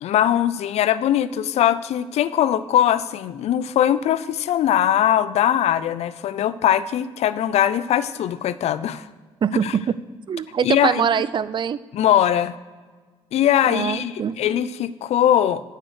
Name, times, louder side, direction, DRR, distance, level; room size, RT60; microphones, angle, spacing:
voice 1, 0.0-9.1 9.6-9.8 10.6-11.1 11.9-12.6 13.3-15.6, left 11 dB, 70° left, 16 dB, 0.5 m, -21 dB
voice 2, 9.4-10.0 10.3-11.8 13.7-14.6, right 7 dB, 45° right, 17 dB, 0.5 m, -23 dB
9.3 x 6.6 x 6.2 m, 1.4 s
supercardioid pair, 65°, 11 cm